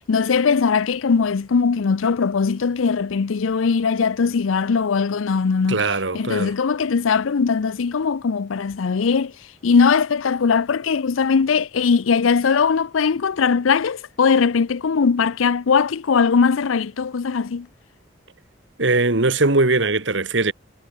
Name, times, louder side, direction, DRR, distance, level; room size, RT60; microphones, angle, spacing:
voice 1, 0.1-5.8 6.1-9.3 9.6-17.7, left 5 dB, 90° left, 0.5 m, -20 dB
voice 2, 5.7-6.5 18.8-20.5, right 3 dB, 70° right, 1.9 m, -20 dB
head